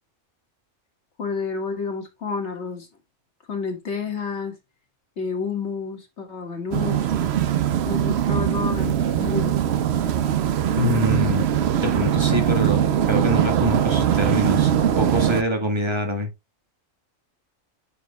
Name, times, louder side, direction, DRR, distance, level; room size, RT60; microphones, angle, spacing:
voice 1, 1.2-2.9 3.5-4.6 5.2-7.1 7.9-9.6, left 5 dB, 60° left, 2.1 m, -30 dB
sound 1, 6.7-15.4, right 10 dB, 60° right, 0.8 m, -21 dB
voice 2, 10.8-11.4 11.8-14.7 15.0-16.3, left 1 dB, 20° right, 1.5 m, -25 dB
9.2 x 4.7 x 2.3 m
omnidirectional pair, 1.3 m